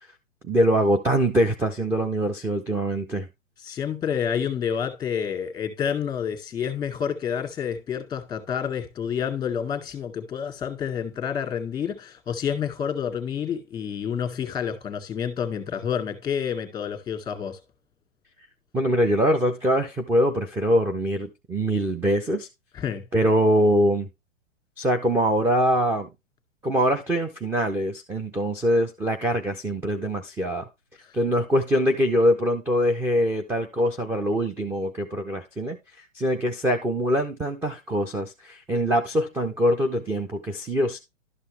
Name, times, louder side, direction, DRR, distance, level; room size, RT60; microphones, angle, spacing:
voice 1, 0.4-3.3 18.7-22.5 23.1-24.1 24.8-26.1 26.6-30.7 31.1-35.8 36.1-41.0, equal, 5° right, 0.6 m, -23 dB
voice 2, 3.6-17.6 22.7-23.1, left 8 dB, 10° left, 1.9 m, -29 dB
12.0 x 5.5 x 3.4 m
hypercardioid pair, 135°, 38 cm